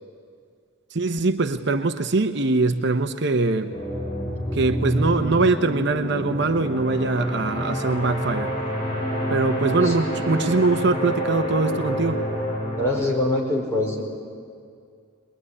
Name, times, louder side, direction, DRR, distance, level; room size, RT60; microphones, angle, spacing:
voice 1, 0.9-3.7 4.5-8.5 9.3-12.2, right 3 dB, 60° right, 8 dB, 0.8 m, -22 dB
sound 1, 3.7-12.9, equal, 30° left, 7.7 m, -28 dB
voice 2, 12.8-14.0, left 1 dB, 15° left, -2 dB, 4.8 m, -24 dB
22.5 x 21.0 x 9.8 m, 2.3 s
head